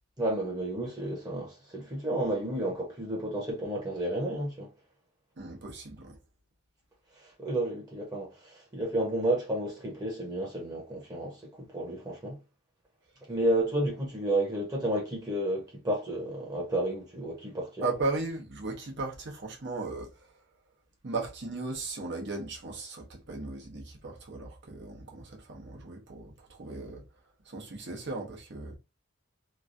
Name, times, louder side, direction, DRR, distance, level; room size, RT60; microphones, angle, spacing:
voice 1, 0.2-4.7 7.2-12.4 13.3-17.8, right 1 dB, 20° right, 0.9 m, -31 dB
voice 2, 5.4-6.2 17.8-20.3 21.0-27.0 27.4-28.8, right 3 dB, 60° right, 1.0 m, -36 dB
3.1 x 2.3 x 2.6 m
head